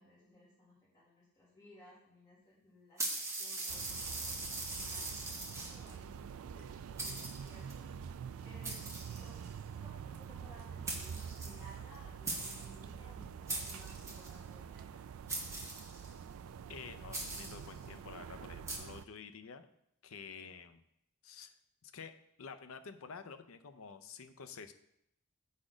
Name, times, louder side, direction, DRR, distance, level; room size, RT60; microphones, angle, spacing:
voice 1, 0.0-8.8 9.1-9.5 9.8-15.0, equal, 20° left, -10 dB, 2.1 m, -60 dB
sound 1, 3.0-5.9 6.6-6.7 7.0-7.7 8.6-9.6 10.6-10.7 10.9-12.0 12.3-12.7 13.5-14.4 15.3-16.2 17.1-17.7 18.7-18.8, right 2 dB, 15° right, 1.2 m, -41 dB
sound 2, 3.7-19.1, right 7 dB, 70° right, 0.3 m, -47 dB
voice 2, 16.7-19.7 20.0-20.8 21.2-21.6 21.8-24.7, left 5 dB, 70° left, 9 dB, 0.6 m, -50 dB
8.5 x 4.2 x 5.0 m, 0.77 s
head